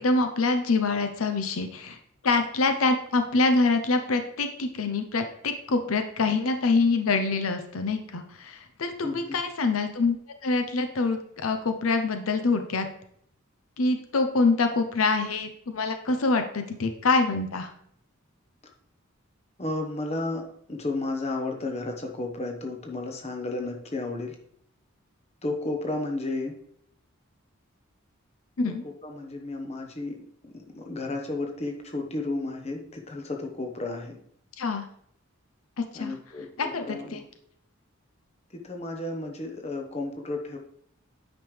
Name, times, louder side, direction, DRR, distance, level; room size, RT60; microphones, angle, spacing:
voice 1, 0.0-2.0 2.2-10.2 10.4-12.9 13.8-17.7 28.6-28.8 34.6-34.8 35.9-36.2 36.6-37.2, left 3 dB, 85° left, 7 dB, 0.7 m, -25 dB
voice 2, 9.0-9.4 19.6-20.4 20.7-24.4 25.4-26.5 29.0-30.2 30.4-34.2 35.9-37.2 38.6-40.6, left 2 dB, 30° left, 2 dB, 1.0 m, -32 dB
9.0 x 5.3 x 3.3 m, 0.68 s
head